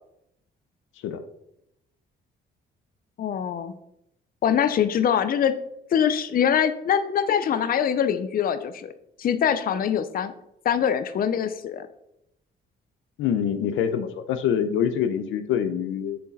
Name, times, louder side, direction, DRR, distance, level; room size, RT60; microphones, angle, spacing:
voice 1, 3.2-3.7 4.4-5.6 5.9-8.9 9.2-10.3 10.6-11.9, left 8 dB, 45° left, 12 dB, 0.5 m, -23 dB
voice 2, 13.2-16.2, left 8 dB, 90° left, 10 dB, 0.6 m, -25 dB
7.4 x 4.6 x 4.1 m, 0.82 s
cardioid pair, 90°, 20 cm